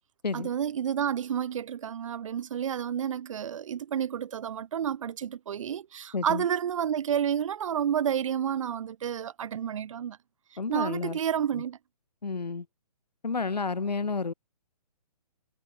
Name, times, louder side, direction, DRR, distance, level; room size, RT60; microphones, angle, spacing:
voice 1, 0.3-10.2 10.7-11.8, right 9 dB, 50° right, 2.7 m, -30 dB
voice 2, 6.1-6.4 10.6-11.2 11.5-11.6 12.2-12.7 13.2-14.3, left 4 dB, 90° left, 3.6 m, -31 dB
hypercardioid pair, 150°, 21 cm